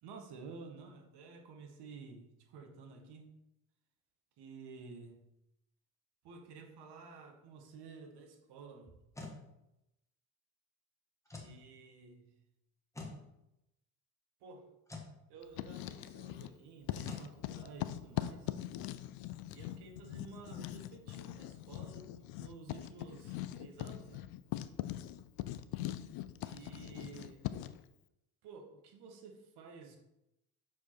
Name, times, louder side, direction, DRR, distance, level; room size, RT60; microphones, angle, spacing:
voice 1, 0.0-3.3 4.4-5.2 6.2-9.1 11.3-12.4 14.4-14.7 15.3-18.5 19.5-24.3 26.4-27.6 28.4-30.0, right 4 dB, 55° right, 4 dB, 1.3 m, -52 dB
sound 1, 8.9-9.4 11.3-11.6 12.9-13.2 14.9-15.1 17.1-17.3, left 3 dB, 5° left, 1.5 m, -45 dB
Writing, 15.4-16.6 16.9-27.8, left 13 dB, 50° left, 0.5 m, -42 dB
6.1 x 4.9 x 4.4 m, 0.88 s
hypercardioid pair, 55°, 49 cm